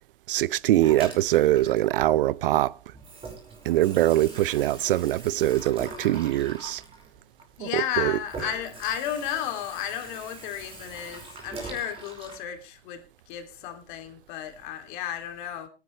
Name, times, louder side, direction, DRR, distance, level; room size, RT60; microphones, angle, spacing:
voice 1, 0.3-2.7 3.7-6.8 7.6-8.2, right 14 dB, 50° right, 0.6 m, -23 dB
Water tap faucet / Sink (filling or washing), 0.8-2.6 2.9-12.4, right 3 dB, 15° right, 4.7 m, -43 dB
voice 2, 7.6-15.7, left 10 dB, 45° left, 2.8 m, -33 dB
19.5 x 9.9 x 3.2 m
hypercardioid pair, 140°, 35 cm